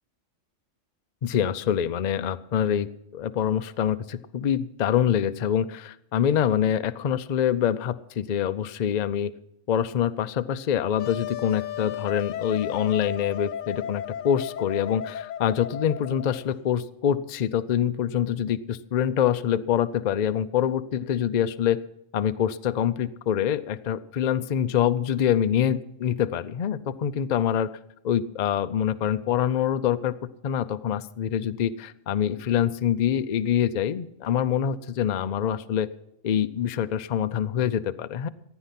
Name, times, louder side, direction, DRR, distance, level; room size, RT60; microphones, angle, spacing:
voice 1, 1.2-9.3 9.7-21.8 22.1-27.7 28.0-30.1 30.4-35.9 36.2-38.3, left 9 dB, 55° left, 12 dB, 0.5 m, -25 dB
Wind instrument woodwind instrument, 11.0-16.5, left 10 dB, 85° left, 1.1 m, -34 dB
15.5 x 9.7 x 5.8 m, 0.77 s
omnidirectional pair, 1.3 m